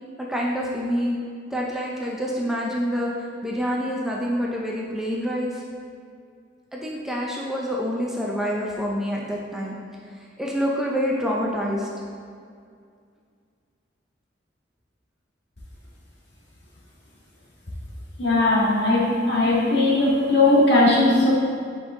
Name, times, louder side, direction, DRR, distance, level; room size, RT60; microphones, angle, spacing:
voice 1, 0.2-1.2 1.5-3.1 3.4-5.6 6.7-9.8 10.1-11.9, equal, ahead, -4 dB, 0.6 m, -27 dB
voice 2, 18.2-21.3, left 2 dB, 60° left, -6 dB, 1.8 m, -18 dB
7.6 x 5.3 x 3.7 m, 2.2 s
head